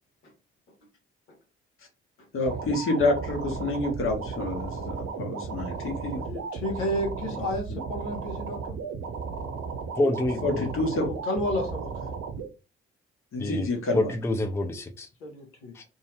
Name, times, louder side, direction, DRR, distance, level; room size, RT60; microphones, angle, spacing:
voice 1, 2.3-6.2 7.7-7.8 10.4-11.1 13.3-14.1, left 2 dB, 45° left, 3 dB, 1.1 m, -28 dB
sound 1, 2.5-12.5, right 5 dB, 50° right, 0.8 m, -35 dB
voice 2, 6.2-8.8 11.0-12.1 15.2-15.7, left 1 dB, 70° left, 0 dB, 1.0 m, -32 dB
voice 3, 10.0-10.7 13.4-13.7 13.9-15.1 15.7-15.8, left 2 dB, 10° left, 5 dB, 0.5 m, -27 dB
2.7 x 2.2 x 3.1 m, 0.30 s
figure-of-eight pair, 40°, 30 cm